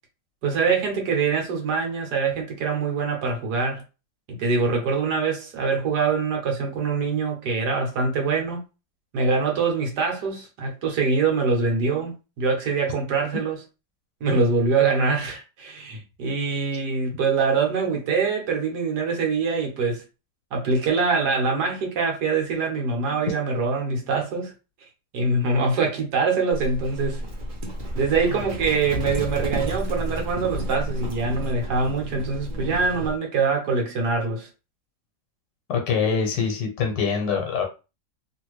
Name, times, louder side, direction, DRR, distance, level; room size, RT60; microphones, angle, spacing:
voice 1, 0.4-3.8 4.4-8.6 9.1-13.6 14.2-20.0 20.5-24.5 25.1-27.2 27.9-34.5, right 4 dB, 70° right, 1.5 m, -24 dB
Livestock farm animals working animals, 26.5-33.2, right 1 dB, 40° right, 0.8 m, -31 dB
voice 2, 35.7-37.6, left 6 dB, 80° left, 1.5 m, -24 dB
3.3 x 2.5 x 3.0 m
omnidirectional pair, 1.8 m